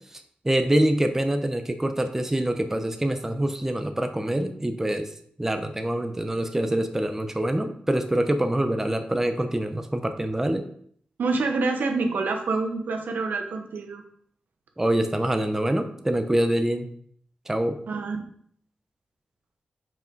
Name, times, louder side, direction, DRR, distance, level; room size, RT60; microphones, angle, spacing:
voice 1, 0.1-5.1 5.4-10.6 14.8-16.9 17.5-17.8, right 1 dB, 15° right, 7 dB, 0.7 m, -25 dB
voice 2, 11.2-14.0 17.9-18.2, right 3 dB, 80° right, 5 dB, 1.0 m, -27 dB
5.8 x 4.8 x 4.6 m, 0.63 s
wide cardioid pair, 90°, 3 cm